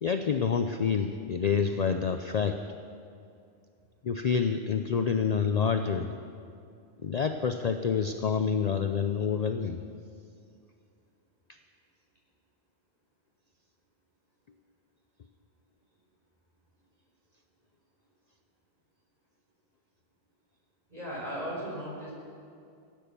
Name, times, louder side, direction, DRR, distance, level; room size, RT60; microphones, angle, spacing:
voice 1, 0.0-2.6 4.0-6.1 7.0-9.8, left 6 dB, 50° left, 7 dB, 0.6 m, -27 dB
voice 2, 20.9-22.1, equal, 40° right, -5 dB, 4.7 m, -36 dB
16.5 x 9.2 x 6.8 m, 2.4 s
omnidirectional pair, 1.1 m